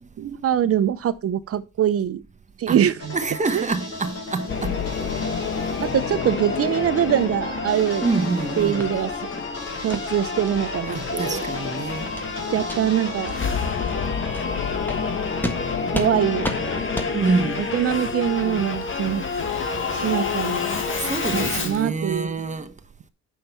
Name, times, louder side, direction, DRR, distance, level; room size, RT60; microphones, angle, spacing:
voice 1, 0.2-2.2 2.6-3.1 3.5-3.7 5.9-8.1 8.6-9.1 9.8-11.5 12.5-13.3 15.9-16.8 17.1-19.3 19.9-20.6 21.3-22.3, right 10 dB, 50° right, 0.8 m, -23 dB
sound 1, 3.0-13.5, left 3 dB, 60° left, 4.7 m, -35 dB
voice 2, 3.1-5.3 8.0-8.9 10.9-12.2 17.2-17.7 20.8-22.7, right 3 dB, 25° right, 1.1 m, -27 dB
Singing / Musical instrument, 4.5-21.8, left 5 dB, 40° left, 1.7 m, -28 dB
sound 2, 8.8-8.9 9.3-9.5 9.9-10.0 10.5-10.6 11.0-11.1 11.5-11.7 12.1-12.3 12.6-12.8 13.3-13.4 13.8-13.9 14.3-14.5 14.9-15.0 15.4-15.6 15.9-16.1 16.4-16.6 16.9-17.1, left 1 dB, 5° left, 1.6 m, -30 dB
7.5 x 5.6 x 4.5 m
cardioid pair, 90°, 30 cm